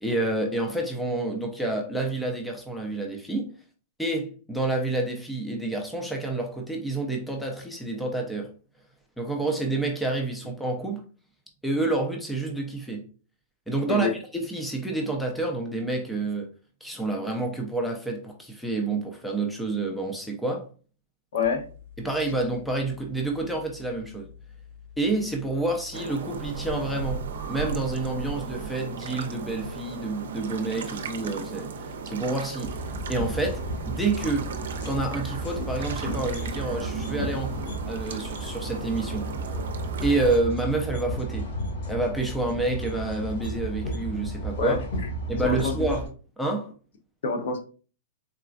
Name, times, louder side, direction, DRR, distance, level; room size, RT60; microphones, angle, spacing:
voice 1, 0.0-3.5 4.0-8.5 9.2-11.0 11.6-13.0 13.7-16.5 16.8-20.7 22.0-24.3 25.0-32.8 33.1-34.5 34.8-39.3 40.0-41.5 41.9-44.8 45.3-46.1 46.4-46.7, right 2 dB, ahead, 0.4 m, -28 dB
voice 2, 21.3-21.7 44.6-44.8 45.4-45.7 47.2-47.6, left 4 dB, 70° left, 0.7 m, -26 dB
sound 1, 21.4-33.7, left 7 dB, 45° right, 0.8 m, -48 dB
sound 2, 25.9-40.4, right 6 dB, 85° right, 0.5 m, -36 dB
sound 3, 32.6-46.1, right 1 dB, 55° left, 1.6 m, -33 dB
3.9 x 2.3 x 2.4 m
supercardioid pair, 165°, 0 cm